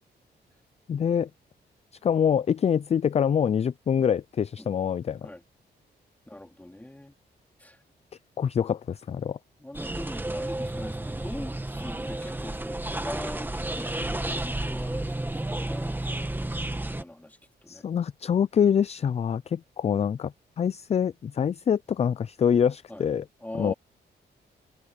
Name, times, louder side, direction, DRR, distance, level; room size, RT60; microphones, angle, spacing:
voice 1, 0.9-1.3 2.0-5.3 8.4-9.4 17.7-23.3 23.6-23.7, left 8 dB, 35° left, 0.4 m, -25 dB
voice 2, 6.3-7.2 7.6-7.8 9.6-16.5 16.9-17.8 22.9-23.0 23.4-23.7, left 1 dB, 10° left, 2.7 m, -42 dB
sound 1, 9.7-17.0, right 1 dB, 10° right, 1.6 m, -32 dB
cardioid pair, 100°, 18 cm